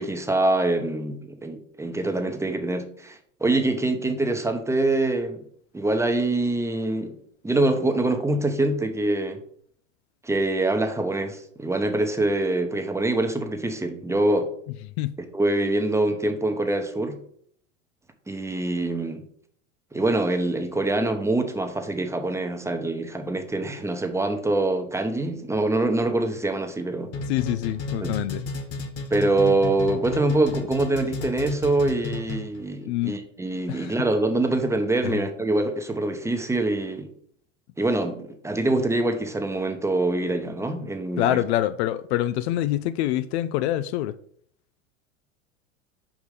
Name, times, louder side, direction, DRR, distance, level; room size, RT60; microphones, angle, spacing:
voice 1, 0.0-5.4 5.7-7.1 7.4-9.4 10.2-14.5 15.3-17.2 18.3-19.2 19.9-27.1 28.0-28.1 29.1-37.1 37.8-38.2 38.4-41.4, right 2 dB, 5° right, 0.8 m, -24 dB
sound 1, 27.1-32.6, left 3 dB, 40° left, 1.5 m, -32 dB
voice 2, 27.3-28.5 32.9-33.2 33.7-33.9 35.0-35.2 41.2-44.1, left 13 dB, 55° left, 0.4 m, -25 dB
5.2 x 5.0 x 5.1 m
hypercardioid pair, 100°, 39 cm